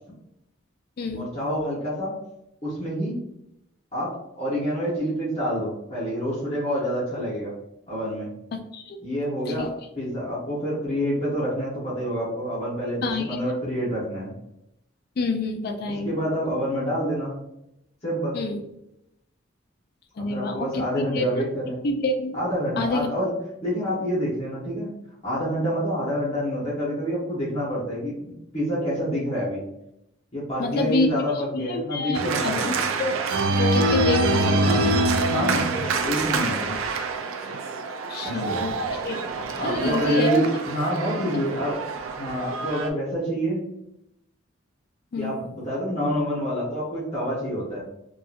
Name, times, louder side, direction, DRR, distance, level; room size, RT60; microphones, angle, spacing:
voice 1, 1.1-2.1 2.6-3.1 3.9-7.5 7.9-8.3 9.0-14.3 16.0-17.4 18.0-18.4 20.3-21.8 22.3-23.3 23.6-24.9 25.2-29.6 30.3-32.8 34.6-34.8 35.3-36.7 38.2-38.6 39.6-41.8 42.1-43.6 45.2-47.8, equal, 30° left, -7 dB, 0.9 m, -27 dB
voice 2, 8.5-9.0 9.5-9.7 13.0-13.4 15.2-16.2 18.3-18.6 20.2-20.8 21.1-21.2 21.8-22.4 22.8-23.1 30.6-31.1 31.5-33.2 33.6-35.0 38.1-38.8 39.0-39.2 39.6-40.3 40.8-40.9 45.1-45.3, left 3 dB, 50° left, 5 dB, 0.4 m, -27 dB
Organ, 32.1-42.9, right 2 dB, 85° right, 0.3 m, -25 dB
2.8 x 2.3 x 2.4 m, 0.83 s
head